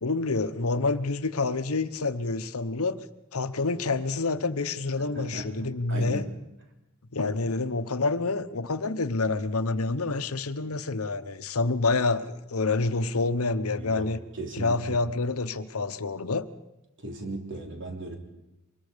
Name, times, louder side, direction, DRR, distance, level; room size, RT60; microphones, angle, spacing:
voice 1, 0.0-3.0 3.3-6.2 7.1-14.2 14.5-16.5, left 3 dB, 75° left, 1.0 m, -28 dB
voice 2, 5.0-6.3 13.8-15.0 17.0-18.2, right 1 dB, 60° right, 3.3 m, -37 dB
24.5 x 21.0 x 5.2 m
head